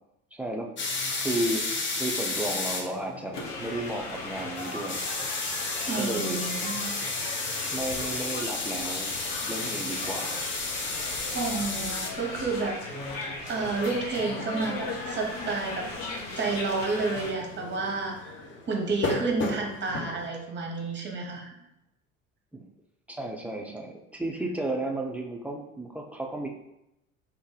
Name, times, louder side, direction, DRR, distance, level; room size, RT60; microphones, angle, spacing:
voice 1, 0.3-0.7 1.2-5.0 6.0-6.4 7.7-9.1 9.5-10.4 22.5-22.7 23.1-26.5, right 1 dB, 5° right, 1 dB, 0.3 m, -33 dB
Making a Cappuccino, 0.8-20.3, left 3 dB, 30° left, 0.7 m, -34 dB
sound 1, 3.3-17.3, left 2 dB, 70° left, 0.9 m, -38 dB
voice 2, 5.9-6.9 11.3-13.2 13.5-18.4 18.6-21.5, right 3 dB, 30° right, 0 dB, 0.9 m, -30 dB
2.8 x 2.5 x 3.8 m, 0.85 s
figure-of-eight pair, 60°, 40 cm